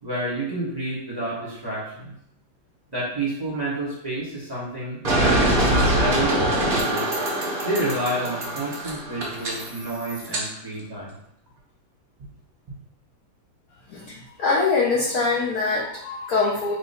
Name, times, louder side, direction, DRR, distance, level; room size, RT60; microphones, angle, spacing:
voice 1, 0.0-2.1 2.9-7.1 7.6-11.1, right 1 dB, 25° right, -9 dB, 1.1 m, -29 dB
sound 1, 5.0-10.4, right 1 dB, 75° right, 0.5 m, -23 dB
voice 2, 14.4-16.7, left 4 dB, 80° left, -4 dB, 0.8 m, -23 dB
3.4 x 3.0 x 4.2 m, 0.74 s
omnidirectional pair, 2.4 m